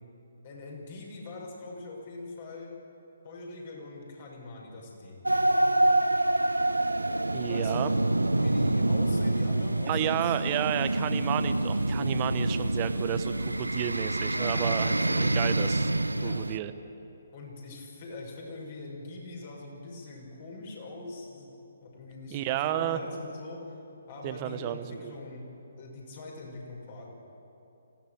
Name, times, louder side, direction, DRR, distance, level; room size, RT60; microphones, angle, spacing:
voice 1, 0.4-2.7 3.2-5.2 7.4-8.0 8.4-10.7 14.3-15.4 16.2-16.4 17.3-23.6 24.1-27.1, left 2 dB, 45° left, -1 dB, 6.3 m, -42 dB
sound 1, 5.3-16.6, right 2 dB, 85° right, 0.7 m, -26 dB
voice 2, 7.3-7.9 9.9-15.9 16.2-16.7 22.3-23.0 24.2-25.2, right 12 dB, 30° right, 10 dB, 1.0 m, -31 dB
25.5 x 16.5 x 8.1 m, 2.9 s
figure-of-eight pair, 135°, 0 cm